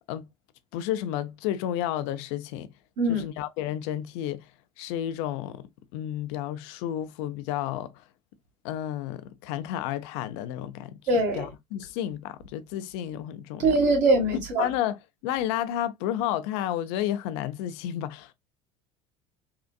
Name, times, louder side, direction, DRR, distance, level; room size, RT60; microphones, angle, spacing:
voice 1, 0.7-2.7 3.1-4.4 4.8-5.6 5.9-7.9 8.6-11.0 11.4-13.7 14.3-15.0 15.2-18.3, left 11 dB, 70° left, 0.5 m, -31 dB
voice 2, 3.0-3.3 11.1-11.5 13.6-14.7, right 2 dB, 55° right, 2.0 m, -22 dB
3.7 x 2.4 x 2.3 m
hypercardioid pair, 80°, 16 cm